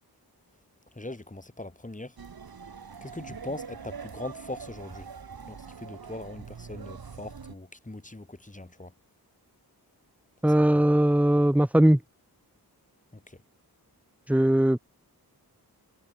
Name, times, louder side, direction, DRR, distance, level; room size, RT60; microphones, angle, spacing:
voice 1, 0.9-2.2 3.0-5.1 5.5-8.9 13.3-13.4, left 2 dB, 20° left, 4.6 m, -41 dB
sound 1, 2.2-7.6, right 6 dB, 65° right, 3.0 m, -43 dB
voice 2, 10.4-12.0 14.3-14.8, right 1 dB, 5° right, 1.2 m, -20 dB
wide cardioid pair, 70°, 39 cm